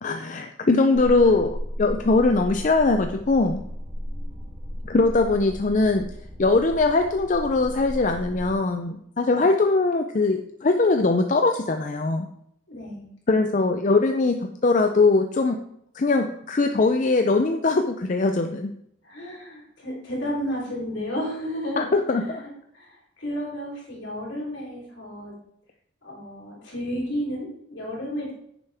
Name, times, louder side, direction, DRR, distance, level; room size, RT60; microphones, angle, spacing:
voice 1, 0.0-3.6 4.9-6.1 6.4-12.3 13.3-15.6 15.9-18.7 21.8-22.4, left 3 dB, 40° left, 6 dB, 0.4 m, -21 dB
sound 1, 0.9-8.5, equal, 15° right, 3.1 m, -35 dB
voice 2, 12.7-13.1 19.0-22.4 22.7-25.3 26.0-28.3, equal, 65° left, -3 dB, 3.5 m, -32 dB
9.9 x 7.0 x 3.4 m, 0.73 s
head